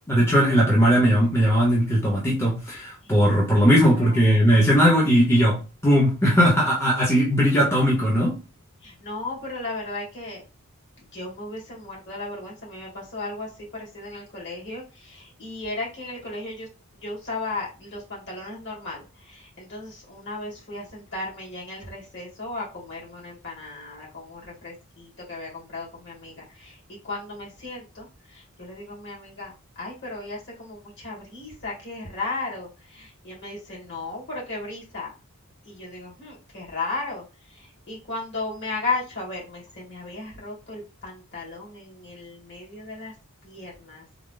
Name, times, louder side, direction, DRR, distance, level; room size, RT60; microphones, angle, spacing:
voice 1, 0.1-8.4, equal, 10° left, 0.9 m, -19 dB
voice 2, 3.8-4.4 8.8-10.4 11.1-16.7 17.0-26.8 27.0-35.1 35.7-43.1 43.4-44.0, left 3 dB, 55° left, 2.0 m, -35 dB
3.7 x 2.0 x 3.8 m
head